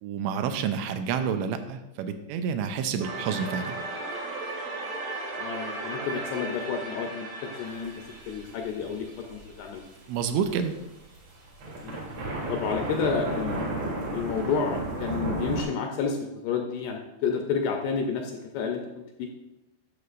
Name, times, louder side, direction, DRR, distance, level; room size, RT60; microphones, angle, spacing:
voice 1, 0.0-3.8 10.1-10.7, right 7 dB, 85° right, 8 dB, 2.9 m, -29 dB
sound 1, 3.0-9.9, right 2 dB, 70° right, 3.5 m, -36 dB
voice 2, 5.4-7.9 8.3-9.8 11.7-12.0 12.5-13.6 14.1-16.2 16.4-19.3, left 6 dB, 80° left, 3 dB, 2.4 m, -30 dB
sound 2, 7.7-8.9 9.2-10.8 11.2-11.3 11.5-15.6, right 1 dB, 50° right, 2.3 m, -32 dB
12.0 x 6.7 x 2.5 m, 0.95 s
omnidirectional pair, 5.2 m